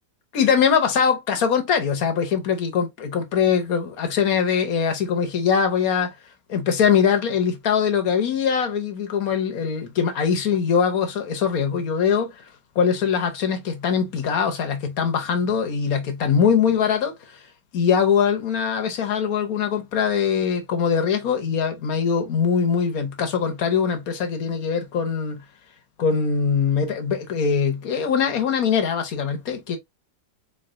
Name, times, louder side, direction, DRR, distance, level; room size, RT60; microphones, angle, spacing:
voice 1, 0.3-6.1 6.5-12.3 12.7-17.4 17.7-25.4 26.0-29.8, left 7 dB, 60° left, 1.2 m, -22 dB
4.0 x 3.2 x 2.5 m
omnidirectional pair, 1.9 m